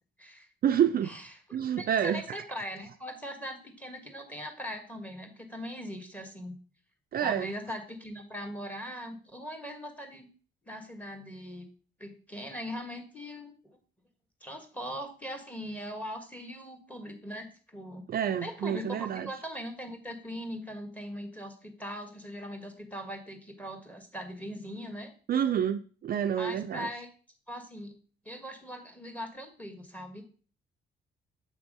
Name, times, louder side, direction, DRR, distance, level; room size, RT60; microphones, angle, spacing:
voice 1, 0.6-1.1 1.5-2.4 7.1-7.5 18.1-19.3 25.3-26.9, right 9 dB, 50° right, 0.4 m, -28 dB
voice 2, 1.8-6.6 7.2-10.3 10.6-11.7 12.0-13.8 14.4-18.0 18.4-25.1 26.4-27.1 27.5-27.9 28.2-30.2, equal, 5° left, 1.6 m, -40 dB
7.3 x 3.5 x 5.4 m
cardioid pair, 90°, 20 cm